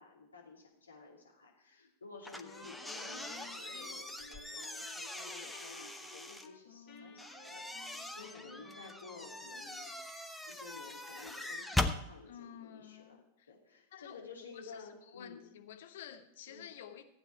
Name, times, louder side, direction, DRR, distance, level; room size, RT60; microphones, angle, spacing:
voice 1, 0.0-9.9 10.4-15.5 16.5-16.7, left 4 dB, 75° left, -1 dB, 2.7 m, -53 dB
sound 1, 2.2-6.5 7.2-12.0, left 2 dB, 5° left, 0.9 m, -41 dB
Wind instrument woodwind instrument, 2.4-6.6 6.9-9.8, left 3 dB, 40° left, 5.4 m, -56 dB
voice 2, 6.7-7.1 12.3-13.2 13.9-14.5 15.1-17.0, left 9 dB, 55° left, 7 dB, 1.2 m, -51 dB
15.0 x 9.0 x 4.4 m, 0.85 s
figure-of-eight pair, 90°, 0 cm